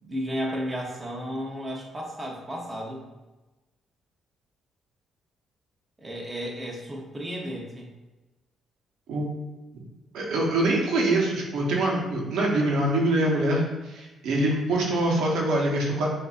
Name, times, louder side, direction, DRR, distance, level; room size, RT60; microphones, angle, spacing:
voice 1, 0.0-3.1 6.0-7.9, equal, 20° right, -2 dB, 0.9 m, -33 dB
voice 2, 10.1-16.1, right 1 dB, 85° right, -2 dB, 0.9 m, -24 dB
6.0 x 2.6 x 2.5 m, 1.1 s
cardioid pair, 90°, 0 cm